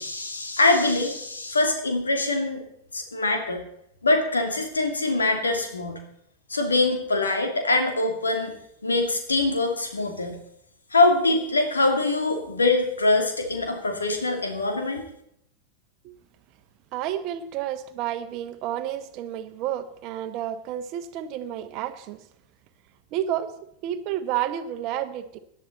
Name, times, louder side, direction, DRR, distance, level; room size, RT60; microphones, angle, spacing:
voice 1, 0.0-2.6 2.9-3.6 4.0-6.0 6.5-8.5 8.8-10.4 10.9-15.0, left 2 dB, 75° left, 5 dB, 2.6 m, -23 dB
voice 2, 16.9-22.2 23.1-23.6 23.8-25.4, right 11 dB, 40° right, 10 dB, 1.1 m, -30 dB
18.0 x 11.5 x 4.2 m, 0.74 s
figure-of-eight pair, 90°, 0 cm